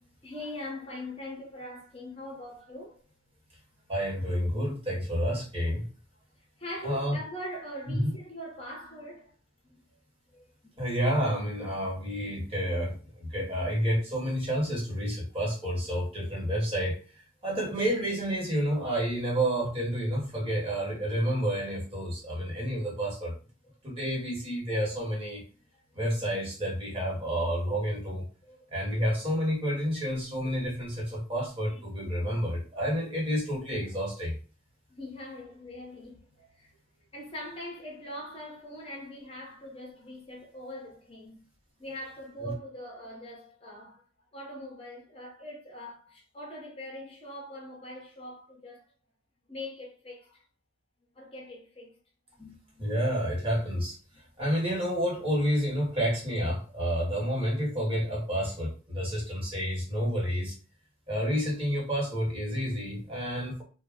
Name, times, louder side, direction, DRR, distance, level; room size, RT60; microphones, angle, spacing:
voice 1, 0.2-3.0 6.6-9.3 9.6-9.8 10.3-10.5 12.2-12.3 15.4-15.5 23.9-24.0 25.7-25.8 28.4-28.7 31.7-31.8 34.9-36.7 37.1-41.5 41.8-44.0 44.3-48.9 49.5-50.4 51.1-52.0, left 1 dB, 25° left, 0.9 m, -42 dB
voice 2, 3.9-5.8 6.8-7.2 7.9-8.1 10.8-17.0 17.4-23.3 23.8-25.4 25.9-28.2 28.7-34.4 42.4-42.5 52.4-54.0 54.4-60.5 61.1-63.6, equal, 25° right, 1.2 m, -29 dB
2.3 x 2.1 x 3.5 m
head